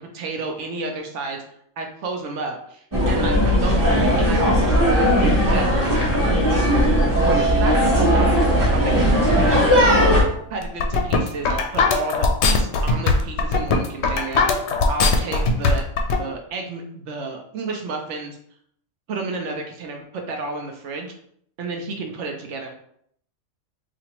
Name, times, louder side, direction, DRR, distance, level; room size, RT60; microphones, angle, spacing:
voice 1, 0.0-1.4 1.8-10.1 10.5-15.8 16.2-18.4 19.1-21.1 21.6-22.7, right 3 dB, 70° right, 3 dB, 0.9 m, -31 dB
sound 1, 2.9-10.2, equal, 20° right, 0.8 m, -18 dB
sound 2, 7.1-14.7 15.0-15.5, right 5 dB, 90° right, 1.1 m, -31 dB
sound 3, 10.6-16.2, left 3 dB, 65° left, 0.8 m, -19 dB
4.2 x 2.5 x 2.9 m, 0.67 s
omnidirectional pair, 1.4 m